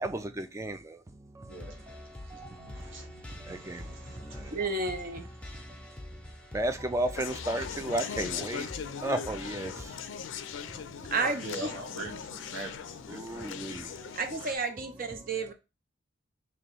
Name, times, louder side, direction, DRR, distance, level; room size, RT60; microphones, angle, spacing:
voice 1, 0.0-0.8 3.5-3.8 6.5-8.7 9.0-9.7 13.1-13.8, right 1 dB, 15° right, 0.3 m, -32 dB
voice 2, 1.4-4.9 5.5-5.7 11.2-12.8 13.1-13.6, right 1 dB, 70° right, 1.0 m, -43 dB
sound 1, 1.5-9.9, left 1 dB, 5° left, 0.7 m, -46 dB
voice 3, 4.5-5.2 11.1-11.4 14.2-15.5, right 3 dB, 45° right, 0.7 m, -31 dB
Conversation, 7.2-14.6, left 7 dB, 70° left, 0.4 m, -39 dB
3.0 x 2.9 x 4.4 m
head